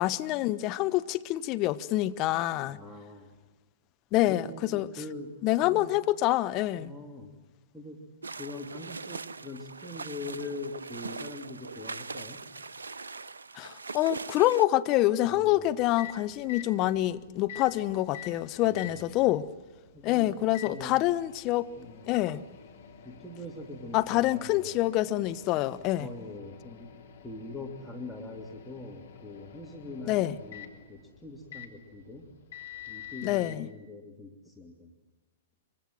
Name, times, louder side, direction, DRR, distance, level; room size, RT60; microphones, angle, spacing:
voice 1, 0.0-2.8 4.1-4.9 5.4-6.9 13.6-19.5 20.0-21.7 22.1-22.4 23.9-26.1 30.1-30.4 33.2-33.7, left 15 dB, 35° left, 1.1 m, -26 dB
voice 2, 2.7-3.3 4.3-5.9 6.8-7.3 7.7-8.1 8.4-12.5 15.2-15.7 18.6-19.1 19.9-20.4 20.7-21.0 21.8-22.0 23.0-24.7 26.0-32.3 32.9-34.9, left 2 dB, 5° left, 3.0 m, -43 dB
sound 1, 8.2-14.7, right 4 dB, 80° right, 0.7 m, -41 dB
Microwave oven, 15.6-33.6, left 9 dB, 60° left, 3.5 m, -48 dB
25.0 x 25.0 x 7.6 m
figure-of-eight pair, 110°, 0 cm